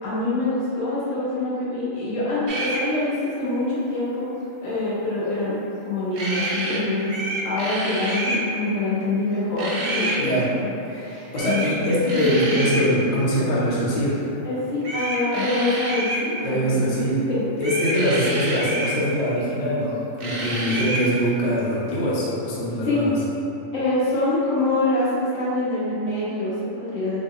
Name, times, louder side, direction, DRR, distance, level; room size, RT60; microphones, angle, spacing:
voice 1, 0.0-4.3 4.6-7.1 7.4-11.8 14.4-17.0 17.3-17.4 22.8-23.1 23.7-27.2, left 2 dB, 75° left, -9 dB, 1.3 m, -25 dB
sound 1, 2.5-2.8 6.1-6.8 7.1-8.4 9.6-10.2 11.4-11.7 12.1-12.9 14.8-16.3 17.6-19.0 20.2-21.1, right 1 dB, 60° right, 0.6 m, -28 dB
voice 2, 10.1-10.5 10.8-14.2 16.4-17.2 17.6-23.1, equal, 45° left, -7 dB, 0.6 m, -23 dB
3.5 x 2.1 x 3.7 m, 2.8 s
omnidirectional pair, 1.3 m